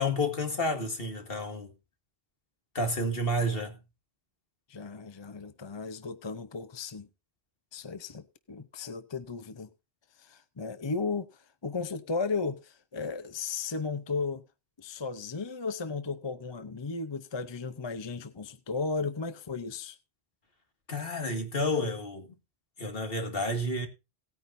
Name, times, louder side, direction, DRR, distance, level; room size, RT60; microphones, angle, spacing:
voice 1, 0.0-1.7 2.7-3.8 20.9-22.3 22.8-23.9, left 1 dB, 60° left, 2.2 m, -30 dB
voice 2, 4.7-7.1 7.7-9.7 10.2-14.4 14.8-20.0, left 4 dB, 30° left, 0.7 m, -35 dB
18.0 x 9.5 x 2.6 m
omnidirectional pair, 1.1 m